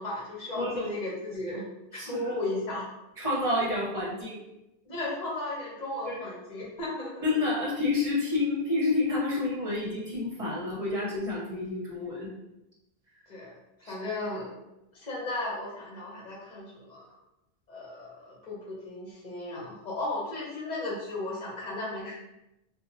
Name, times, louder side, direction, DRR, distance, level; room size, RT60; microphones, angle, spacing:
voice 1, 0.0-1.6 1.9-2.8 4.9-7.2 13.3-13.5 13.8-14.6 14.9-17.0 17.7-22.1, left 2 dB, 45° left, -5 dB, 0.9 m, -35 dB
voice 2, 0.5-1.0 2.0-2.2 3.2-4.4 6.1-6.2 7.2-12.3 13.8-13.9, left 2 dB, 35° right, -6 dB, 1.1 m, -29 dB
2.7 x 2.2 x 2.7 m, 0.90 s
omnidirectional pair, 1.0 m